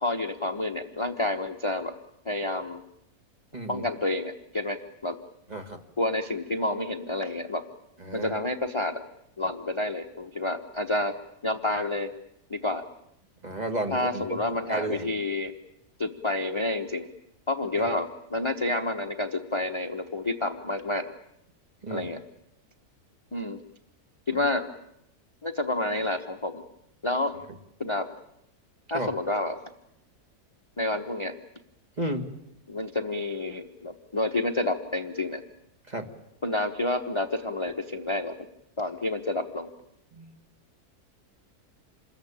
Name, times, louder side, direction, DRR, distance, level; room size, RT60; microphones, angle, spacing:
voice 1, 0.0-1.9 2.2-2.8 3.7-5.2 6.0-7.6 8.1-9.0 9.4-11.2 11.4-12.1 12.5-12.8 13.9-15.5 16.0-17.1 17.5-21.1 21.9-22.2 23.3-23.6 24.3-24.7 25.4-26.6 27.0-27.3 27.8-28.1 28.9-29.6 30.8-31.4 32.7-35.4 36.4-38.4 38.8-39.7, left 2 dB, 20° left, 6 dB, 1.0 m, -29 dB
voice 2, 3.5-3.8 5.5-5.8 8.0-8.3 13.4-14.4 14.7-15.1 17.8-17.9 21.8-22.1 24.3-24.4 28.9-29.1 32.0-32.3 35.9-36.1 40.1-40.3, right 2 dB, 25° right, 4 dB, 2.3 m, -32 dB
28.0 x 21.5 x 8.8 m, 0.80 s
omnidirectional pair, 1.6 m